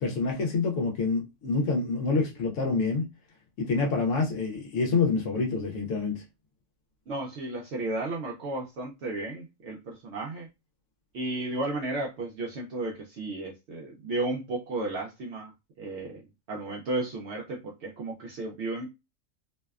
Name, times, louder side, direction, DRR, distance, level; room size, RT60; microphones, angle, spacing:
voice 1, 0.0-3.1 3.6-6.2, left 4 dB, 80° left, 1.0 m, -27 dB
voice 2, 7.1-10.5 11.1-16.2 16.5-18.9, right 2 dB, 65° right, 0.8 m, -33 dB
2.6 x 2.1 x 2.3 m
omnidirectional pair, 1.3 m